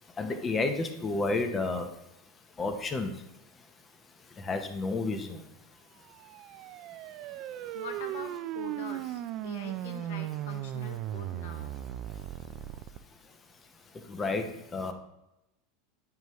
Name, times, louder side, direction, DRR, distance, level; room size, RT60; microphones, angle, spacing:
voice 1, 0.2-1.9 2.6-3.1 4.5-5.4 14.1-14.4 14.7-14.9, left 3 dB, 25° left, 7 dB, 0.9 m, -30 dB
sound 1, 6.1-13.0, right 13 dB, 50° right, 0.4 m, -37 dB
voice 2, 7.7-11.8, left 5 dB, 75° left, 7 dB, 0.9 m, -44 dB
9.4 x 5.3 x 3.1 m, 0.90 s
supercardioid pair, 110°, 0 cm